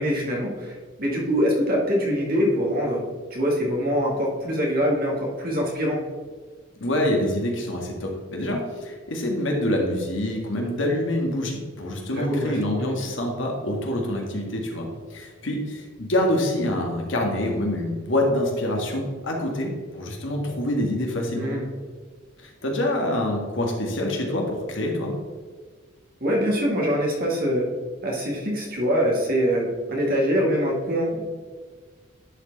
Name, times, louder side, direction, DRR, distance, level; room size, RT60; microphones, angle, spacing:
voice 1, 0.0-3.0 3.3-6.0 12.0-13.1 21.4-21.7 26.2-27.7 28.0-31.3, equal, 45° right, -2 dB, 1.9 m, -24 dB
voice 2, 6.8-21.5 22.4-25.1, left 1 dB, 65° left, 1 dB, 1.5 m, -26 dB
10.5 x 4.6 x 3.9 m, 1.5 s
head